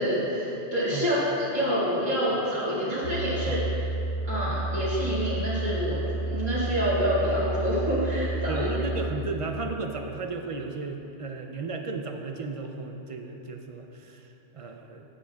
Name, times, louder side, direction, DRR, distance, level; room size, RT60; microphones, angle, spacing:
voice 1, 0.0-3.6 4.3-8.7, equal, 20° right, -12 dB, 2.1 m, -27 dB
sound 1, 3.0-9.1, right 2 dB, 70° left, 1.0 m, -31 dB
voice 2, 8.5-14.3 14.5-15.0, right 4 dB, 45° right, 4 dB, 0.4 m, -34 dB
16.5 x 7.6 x 2.3 m, 2.9 s
omnidirectional pair, 1.2 m